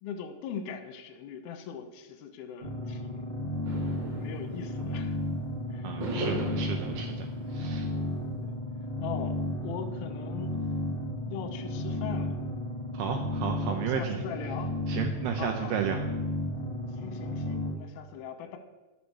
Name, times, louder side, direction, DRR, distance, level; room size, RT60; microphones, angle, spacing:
voice 1, 0.0-3.4 4.2-5.2 5.7-6.0 8.4-8.5 9.0-10.6 11.3-12.3 13.6-14.7 15.3-15.8 16.9-18.6, left 7 dB, 75° left, 6 dB, 2.3 m, -40 dB
sound 1, 2.6-17.7, left 1 dB, 30° left, 1.1 m, -33 dB
sound 2, 3.6-5.4 6.0-8.3, right 1 dB, 35° right, 2.0 m, -39 dB
voice 2, 5.8-7.9 12.9-14.2 14.9-16.1, right 8 dB, 85° right, 4 dB, 2.3 m, -33 dB
11.5 x 7.0 x 6.3 m, 1.2 s
omnidirectional pair, 5.6 m